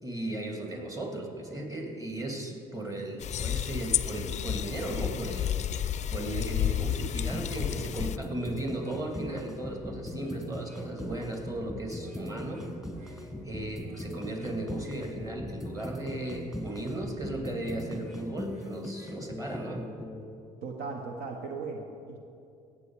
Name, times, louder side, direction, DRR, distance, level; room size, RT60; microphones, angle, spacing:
voice 1, 0.0-12.6 13.0-19.8, right 1 dB, 20° right, 2 dB, 2.4 m, -36 dB
sound 1, 3.2-8.2, left 10 dB, 40° left, 0.4 m, -31 dB
sound 2, 7.3-20.2, left 1 dB, ahead, 1.8 m, -40 dB
voice 2, 20.6-22.2, right 4 dB, 65° right, 3 dB, 1.0 m, -37 dB
17.5 x 7.2 x 4.7 m, 2.6 s
hypercardioid pair, 55°, 18 cm